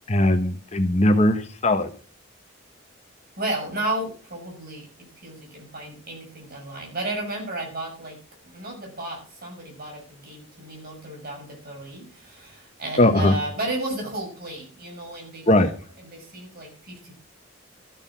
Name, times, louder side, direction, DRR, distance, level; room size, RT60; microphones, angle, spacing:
voice 1, 0.1-1.9 13.0-13.3 15.5-15.7, left 1 dB, 30° left, 8 dB, 1.1 m, -19 dB
voice 2, 3.4-8.2 8.4-17.1, right 1 dB, 45° right, 1 dB, 6.2 m, -33 dB
13.0 x 9.8 x 6.0 m, 0.38 s
head